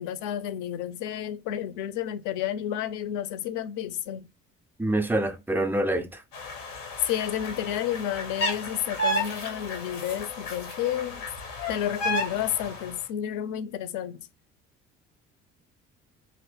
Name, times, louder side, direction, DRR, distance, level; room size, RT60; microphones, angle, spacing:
voice 1, 0.0-4.2 7.1-11.2 11.7-14.2, left 10 dB, 55° left, 0.6 m, -31 dB
voice 2, 4.8-6.2, right 1 dB, 5° right, 0.4 m, -26 dB
sound 1, 6.3-13.0, left 1 dB, 80° left, 0.9 m, -33 dB
3.0 x 2.7 x 3.0 m
figure-of-eight pair, 50°, 37 cm